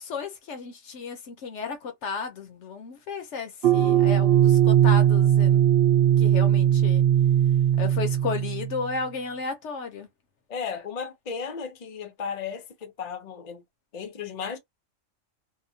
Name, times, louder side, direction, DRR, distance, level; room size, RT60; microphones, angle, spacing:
voice 1, 0.0-5.6 5.9-7.0 7.8-10.1, left 5 dB, 65° left, 0.9 m, -33 dB
sound 1, 3.6-8.8, right 10 dB, 60° right, 0.8 m, -19 dB
voice 2, 10.5-13.6 13.9-14.6, left 6 dB, 40° left, 0.6 m, -35 dB
2.8 x 2.1 x 2.7 m
omnidirectional pair, 1.4 m